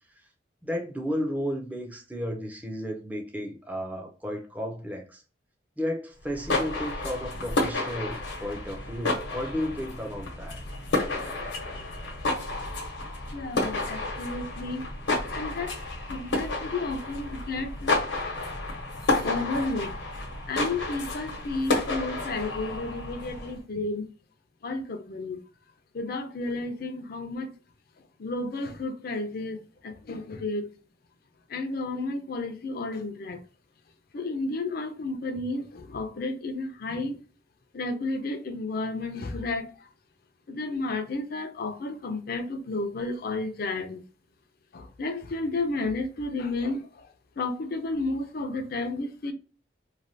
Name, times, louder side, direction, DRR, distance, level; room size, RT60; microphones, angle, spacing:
voice 1, 0.6-5.2 5.8-10.6, equal, 10° right, 0.5 m, -33 dB
sound 1, 6.2-23.6, left 2 dB, 80° left, 0.9 m, -31 dB
voice 2, 11.4-11.8 13.3-14.9 15.3-15.7 16.1-17.9 19.2-19.9 20.5-24.1 24.6-25.4 25.9-27.5 28.2-30.7 31.5-33.4 34.1-37.2 37.7-39.7 40.5-44.0 44.7-47.1 47.4-49.3, left 2 dB, 55° left, 0.5 m, -32 dB
3.2 x 2.3 x 2.6 m
head